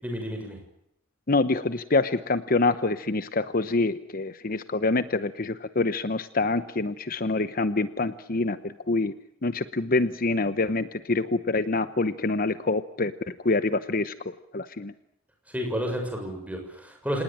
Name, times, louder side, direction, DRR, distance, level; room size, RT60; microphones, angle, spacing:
voice 1, 0.0-0.6 15.5-17.2, equal, 5° right, 3 dB, 6.8 m, -31 dB
voice 2, 1.3-9.1 9.4-13.1 13.4-14.1 14.5-14.9, left 3 dB, 45° left, 12 dB, 0.9 m, -26 dB
27.5 x 19.5 x 8.9 m, 0.76 s
head